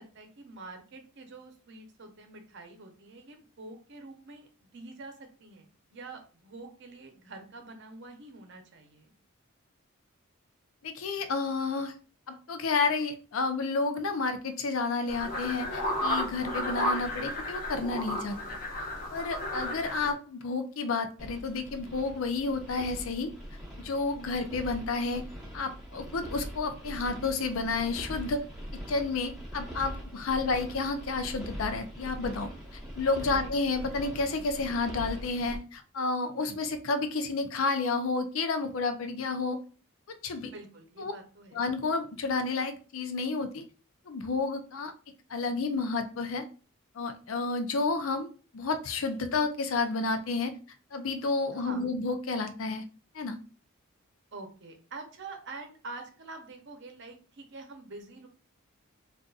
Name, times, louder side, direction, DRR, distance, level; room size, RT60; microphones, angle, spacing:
voice 1, 0.0-9.1 33.2-33.5 40.3-41.6 51.5-51.9 54.3-58.3, right 3 dB, 55° right, 5 dB, 0.7 m, -46 dB
voice 2, 10.8-11.9 12.3-18.6 19.1-23.3 23.8-25.2 25.5-28.4 28.9-32.5 33.0-39.6 40.1-40.5 41.0-41.1 41.5-43.6 44.1-44.9 45.3-46.4 46.9-48.3 48.5-50.5 50.9-52.8 53.1-53.4, left 3 dB, 70° left, 8 dB, 0.5 m, -31 dB
sound 1, 15.1-20.1, left 1 dB, 40° left, 1.1 m, -33 dB
sound 2, 21.2-35.6, equal, 5° right, 1.0 m, -42 dB
3.9 x 2.5 x 2.4 m, 0.36 s
head